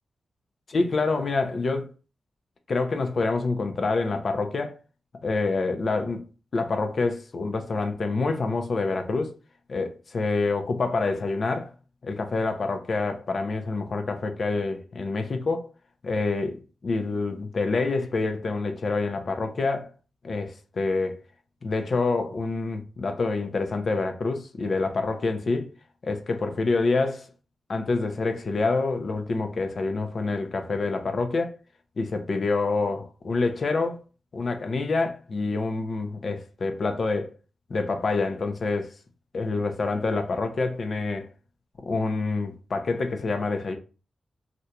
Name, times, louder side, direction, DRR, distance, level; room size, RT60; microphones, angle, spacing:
voice 1, 0.7-1.9 2.7-4.8 5.2-6.2 6.5-9.3 9.7-11.7 12.0-15.7 16.0-19.9 20.2-21.2 21.6-25.7 26.0-27.3 27.7-31.6 32.0-34.0 34.3-37.3 37.7-38.9 39.3-41.3 41.8-43.8, left 3 dB, 60° left, 0.6 m, -27 dB
2.9 x 2.6 x 3.3 m
cardioid pair, 60°, 0 cm